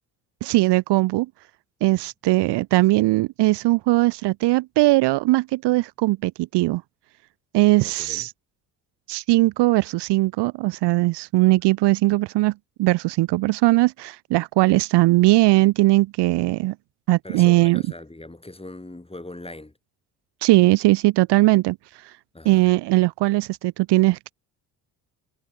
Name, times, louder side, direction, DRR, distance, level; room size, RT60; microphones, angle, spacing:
voice 1, 0.4-1.3 1.8-6.8 7.5-8.3 9.1-12.5 12.8-16.7 17.1-17.8 20.4-21.8 22.4-24.3, right 19 dB, 60° right, 0.8 m, -19 dB
voice 2, 7.8-8.3 17.2-19.7 22.3-22.7, left 2 dB, 10° left, 4.5 m, -40 dB
hypercardioid pair, 45°, 46 cm